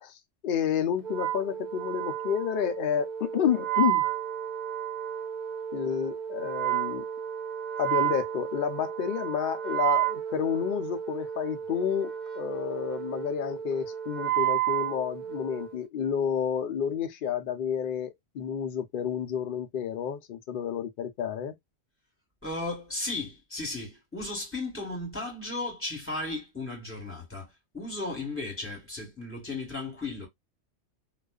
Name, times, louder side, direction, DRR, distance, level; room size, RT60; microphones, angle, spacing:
voice 1, 0.0-4.1 5.7-7.1 7.8-21.5, left 8 dB, 60° left, 0.6 m, -30 dB
Wind instrument woodwind instrument, 1.0-15.8, right 12 dB, 65° right, 0.4 m, -31 dB
voice 2, 22.4-30.3, left 2 dB, 10° left, 1.3 m, -35 dB
2.4 x 2.4 x 2.2 m
omnidirectional pair, 1.3 m